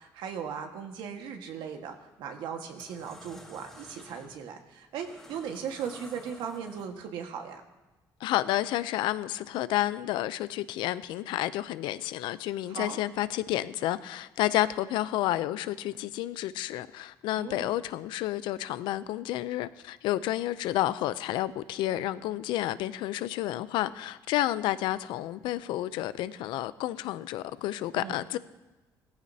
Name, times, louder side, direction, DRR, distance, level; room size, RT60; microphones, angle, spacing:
voice 1, 0.0-7.6 12.7-13.0 17.3-17.7 27.9-28.2, right 7 dB, 80° right, 1.6 m, -38 dB
sound 1, 1.8-2.1 2.5-7.2, left 1 dB, 5° left, 2.7 m, -52 dB
voice 2, 8.2-28.4, left 14 dB, 85° left, 0.5 m, -30 dB
18.0 x 14.5 x 2.8 m
cardioid pair, 115°, 8 cm